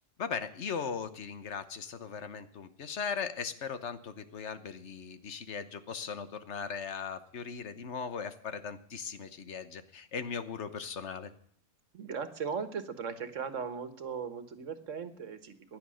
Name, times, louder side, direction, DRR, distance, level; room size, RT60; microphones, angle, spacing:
voice 1, 0.2-11.3, left 6 dB, 70° left, 11 dB, 1.3 m, -38 dB
voice 2, 11.9-15.8, right 6 dB, 85° right, 11 dB, 1.7 m, -38 dB
16.0 x 10.5 x 6.3 m, 0.63 s
omnidirectional pair, 1.3 m